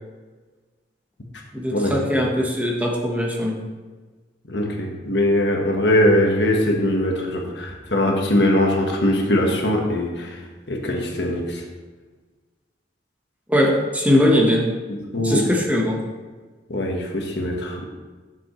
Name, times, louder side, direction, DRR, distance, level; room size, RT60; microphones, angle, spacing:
voice 1, 1.5-3.6 13.5-14.7 15.2-16.0, left 1 dB, 10° right, -2 dB, 1.2 m, -20 dB
voice 2, 4.5-10.4 10.7-11.6 14.9-15.5 16.7-17.9, left 1 dB, 75° left, 1 dB, 1.4 m, -21 dB
10.5 x 7.2 x 3.2 m, 1.3 s
head